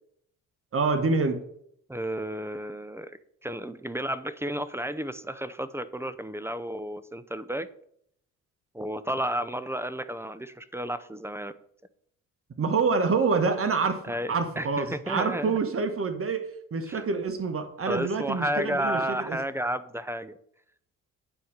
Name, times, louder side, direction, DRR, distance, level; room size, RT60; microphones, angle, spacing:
voice 1, 0.7-1.4 12.6-14.0 14.3-19.4, right 4 dB, 45° right, 7 dB, 1.6 m, -27 dB
voice 2, 1.9-7.7 8.7-11.5 14.1-15.6 16.9-17.0 17.9-20.4, right 1 dB, 10° right, 14 dB, 0.7 m, -32 dB
9.7 x 4.3 x 6.5 m, 0.69 s
supercardioid pair, 70°, 32 cm